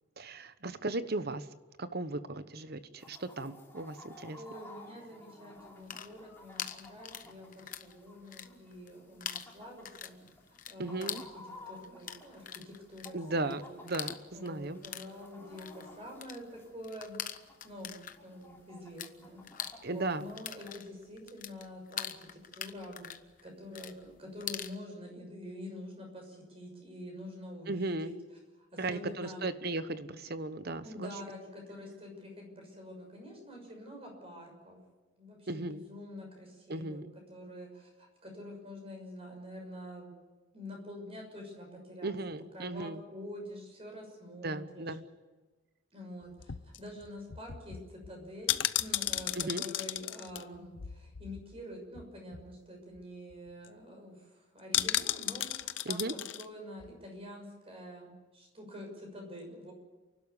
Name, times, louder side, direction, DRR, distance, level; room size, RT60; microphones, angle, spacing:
voice 1, 0.2-1.5 1.8-4.4 10.8-11.2 13.1-14.8 19.8-20.3 27.7-28.1 28.8-31.1 35.5-35.8 36.7-37.1 42.0-43.0 44.4-45.0 49.3-49.6 55.9-56.1, right 2 dB, 50° right, 12 dB, 1.0 m, -36 dB
Chicken rooster, 3.0-20.7, left 2 dB, 10° left, 3.2 m, -55 dB
voice 2, 4.3-10.2 10.7-13.8 14.3-28.1 28.6-29.5 30.8-34.8 35.2-37.0 37.3-40.1 40.5-42.1 42.5-45.0 45.9-59.7, left 1 dB, 30° right, 1 dB, 6.3 m, -47 dB
sound 1, 5.7-7.9 8.2-8.9 9.2-19.1 19.4-24.7, left 9 dB, 40° left, 1.0 m, -43 dB
sound 2, 46.2-51.6 51.9-52.0 52.3-52.6 53.0-53.1 53.3-53.7 54.7-56.5 56.8-56.9, left 13 dB, 65° left, 0.7 m, -35 dB
29.0 x 12.0 x 9.8 m, 1.2 s
head